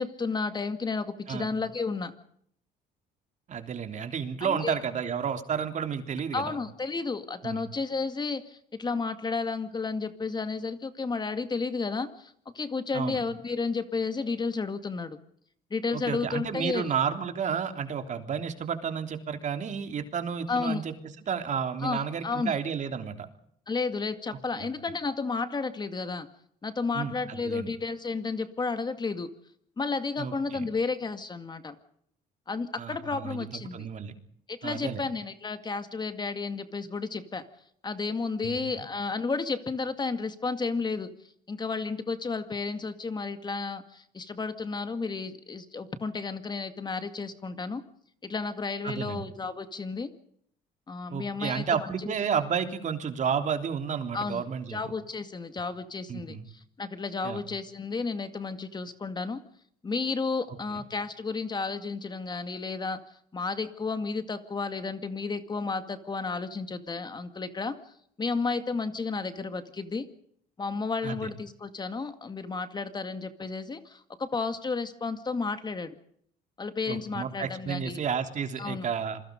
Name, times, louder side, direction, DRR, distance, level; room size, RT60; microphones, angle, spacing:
voice 1, 0.0-2.1 4.4-4.7 6.3-15.2 15.7-16.9 20.5-20.8 21.8-22.6 23.7-26.3 26.6-29.3 29.8-31.8 32.5-33.9 34.5-37.4 37.8-41.1 41.5-47.8 48.2-50.1 50.9-52.1 54.1-54.4 54.7-59.4 59.8-63.0 63.3-67.8 68.2-70.1 70.6-76.0 76.6-78.0 78.6-78.9, left 4 dB, 25° left, 10 dB, 2.1 m, -32 dB
voice 2, 3.5-6.6 7.4-7.6 12.9-13.2 15.9-20.9 21.3-23.3 24.3-24.7 26.9-27.7 30.2-30.7 32.8-33.5 33.7-34.1 34.6-35.0 38.4-38.6 48.8-49.3 51.1-54.9 56.1-56.4 57.2-57.4 60.7-60.8 71.0-71.3 76.9-79.2, right 7 dB, 45° right, 7 dB, 3.3 m, -31 dB
27.5 x 22.0 x 5.3 m, 0.66 s
cardioid pair, 110°, 17 cm